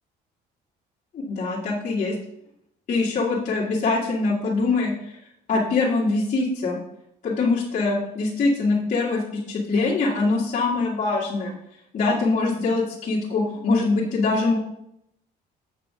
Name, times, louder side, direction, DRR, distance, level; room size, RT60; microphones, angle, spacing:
voice 1, 1.1-2.1 2.9-5.2 5.5-6.8 7.2-11.5 11.9-14.6, left 3 dB, 45° left, -6 dB, 2.1 m, -23 dB
7.9 x 4.9 x 4.9 m, 0.77 s
cardioid pair, 110°, 17 cm